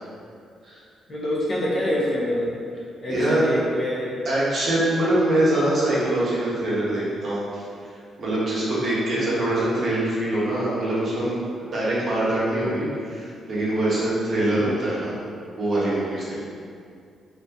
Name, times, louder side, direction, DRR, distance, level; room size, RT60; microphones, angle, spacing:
voice 1, 1.1-2.5 3.0-4.2 9.1-9.3 14.6-15.0, left 1 dB, 50° left, -5 dB, 0.6 m, -26 dB
voice 2, 3.1-3.5 4.2-7.6 8.2-15.1 15.6-16.4, right 1 dB, 55° right, -8 dB, 0.9 m, -23 dB
2.5 x 2.1 x 2.6 m, 2.3 s
hypercardioid pair, 45°, 0 cm